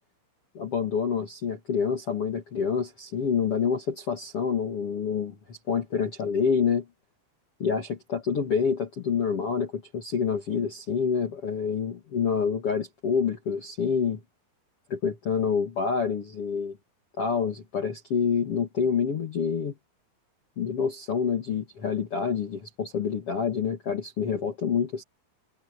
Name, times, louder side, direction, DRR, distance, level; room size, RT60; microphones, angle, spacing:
voice 1, 0.5-6.8 7.6-14.2 14.9-16.8 17.2-19.7 20.6-25.0, left 6 dB, 50° left, 1.8 m, -27 dB
omnidirectional pair, 5.8 m